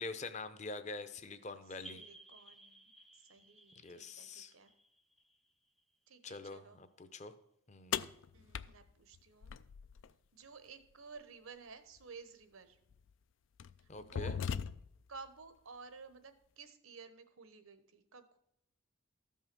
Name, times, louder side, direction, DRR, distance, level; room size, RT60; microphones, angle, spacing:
voice 1, 0.0-2.0 3.8-4.5 6.2-7.3 7.7-8.1 13.9-14.4, left 3 dB, 35° left, 11 dB, 0.7 m, -45 dB
sound 1, 1.8-6.3, right 2 dB, ahead, 0.4 m, -58 dB
voice 2, 1.9-4.7 6.1-6.8 8.3-9.5 10.3-12.8 13.8-14.4 15.1-18.4, right 4 dB, 85° right, 10 dB, 1.1 m, -54 dB
sound 2, 7.9-10.1 12.0-12.1 12.9-13.1 13.6-15.1, left 7 dB, 65° left, 0.4 m, -39 dB
13.0 x 5.6 x 6.0 m, 0.77 s
head